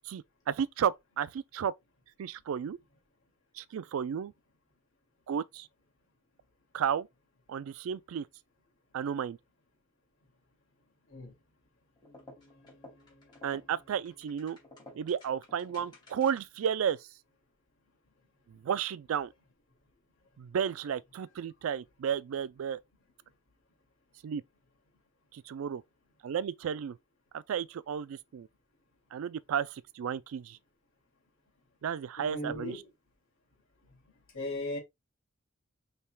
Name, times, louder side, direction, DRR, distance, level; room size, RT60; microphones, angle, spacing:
voice 1, 0.1-1.7 2.2-2.8 3.6-4.3 5.3-5.7 6.7-7.1 7.5-8.3 8.9-9.4 13.4-14.6 14.9-17.0 18.5-19.3 20.4-22.8 24.2-24.4 25.3-25.8 26.2-27.0 27.3-28.5 29.1-30.6 31.8-32.7, right 8 dB, 80° right, 0.3 m, -33 dB
sound 1, 12.0-16.6, left 1 dB, 20° left, 2.3 m, -54 dB
voice 2, 32.2-32.9 34.3-34.8, left 1 dB, 70° left, 2.2 m, -37 dB
5.5 x 3.5 x 2.2 m
head